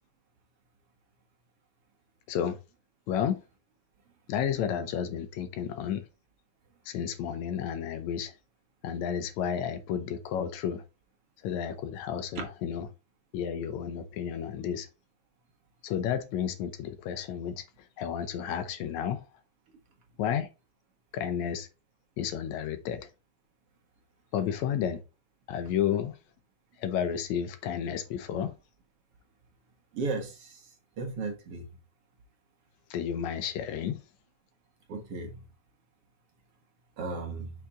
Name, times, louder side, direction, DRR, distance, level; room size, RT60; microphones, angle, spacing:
voice 1, 2.3-2.6 3.1-3.4 4.3-6.1 6.9-8.4 8.8-10.8 11.4-12.9 13.3-14.9 15.8-17.7 18.0-19.3 20.2-20.5 21.1-21.7 22.2-23.1 24.3-25.0 25.5-26.2 26.8-28.5 32.9-34.0, left 8 dB, 75° left, 2.1 m, -31 dB
voice 2, 29.9-30.5 31.0-31.7 34.9-35.3 37.0-37.5, right 3 dB, 55° right, 2.1 m, -34 dB
5.8 x 5.8 x 3.7 m
omnidirectional pair, 3.4 m